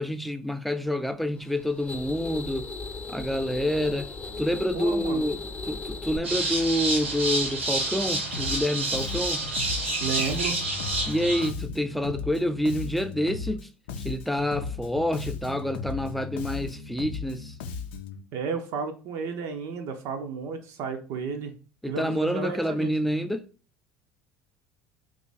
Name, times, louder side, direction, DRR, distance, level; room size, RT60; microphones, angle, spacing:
voice 1, 0.0-2.7 3.1-9.5 11.1-13.7 14.0-17.6 21.8-23.5, equal, ahead, 0.4 m, -28 dB
sound 1, 1.3-6.2, left 3 dB, 20° left, 0.8 m, -37 dB
voice 2, 4.7-5.2 10.0-10.6 18.3-21.5 21.9-22.9, right 5 dB, 55° right, 0.5 m, -32 dB
sound 2, 6.2-11.5, right 2 dB, 85° right, 0.9 m, -28 dB
Bass guitar, 8.3-8.7 8.9-13.6 13.9-18.2, left 5 dB, 70° left, 0.5 m, -36 dB
2.9 x 2.4 x 4.0 m
figure-of-eight pair, 65°, 6 cm